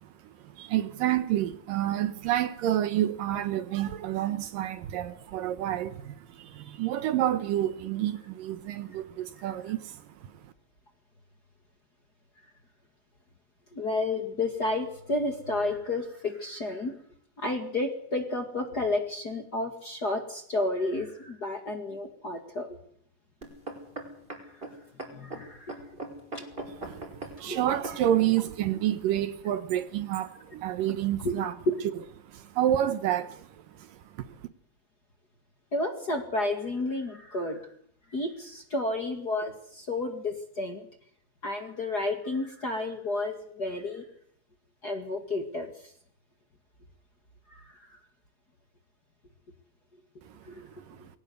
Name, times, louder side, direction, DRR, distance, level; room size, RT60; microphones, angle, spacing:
voice 1, 0.0-10.1 10.4-10.5 26.8-31.5 32.3-33.5 33.8-34.4 50.3-51.0, right 12 dB, 70° right, 2.4 m, -29 dB
voice 2, 13.7-17.0 17.4-22.7 24.3-24.6 25.1-25.8 26.3-26.4 27.5-27.6 31.2-31.8 35.7-37.7 38.1-40.8 41.4-44.1 44.8-45.9 47.5-48.0 50.5-50.7, left 2 dB, 35° left, 2.0 m, -31 dB
sound 1, 23.4-28.3 29.0-29.1, right 2 dB, 15° right, 4.9 m, -40 dB
22.0 x 18.0 x 8.0 m
omnidirectional pair, 4.4 m